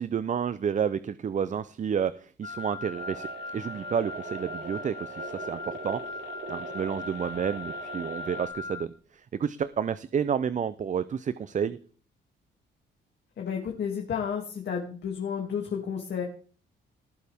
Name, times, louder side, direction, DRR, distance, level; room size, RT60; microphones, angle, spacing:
voice 1, 0.0-3.3 3.5-6.0 6.5-8.9 9.4-11.8, right 7 dB, 40° right, 15 dB, 0.6 m, -30 dB
Wind instrument woodwind instrument, 2.4-8.9, left 3 dB, 30° left, 2.0 m, -39 dB
sound 1, 2.9-8.5, right 4 dB, 75° right, 4.7 m, -41 dB
voice 2, 13.4-16.2, left 7 dB, 60° left, 0 dB, 2.6 m, -31 dB
18.5 x 9.3 x 3.6 m, 0.43 s
cardioid pair, 90°, 20 cm